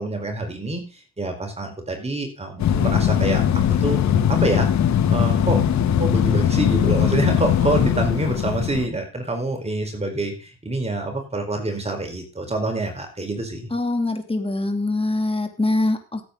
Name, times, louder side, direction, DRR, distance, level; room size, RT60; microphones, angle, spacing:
voice 1, 0.0-4.0 4.3-4.7 5.1-5.6 6.0-13.7, right 2 dB, 20° right, 3 dB, 4.4 m, -26 dB
sound 1, 2.6-8.9, left 9 dB, 65° left, 1.7 m, -20 dB
voice 2, 13.7-16.2, left 2 dB, 20° left, 6 dB, 3.0 m, -23 dB
15.0 x 8.5 x 3.9 m, 0.35 s
cardioid pair, 90°, 30 cm